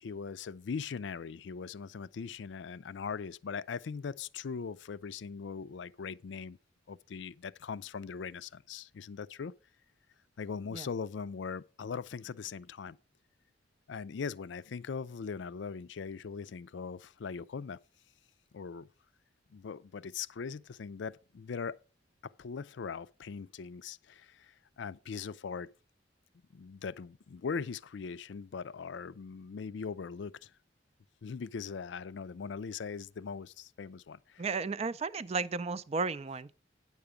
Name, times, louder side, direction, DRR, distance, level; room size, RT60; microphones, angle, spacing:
voice 1, 0.0-6.6 6.9-9.5 10.4-13.0 13.9-17.8 18.5-18.9 19.5-21.8 22.2-25.7 26.5-30.5 31.2-34.4, left 5 dB, 70° left, 0.4 m, -40 dB
voice 2, 34.4-36.6, right 4 dB, 35° right, 0.4 m, -34 dB
9.6 x 6.9 x 5.0 m
head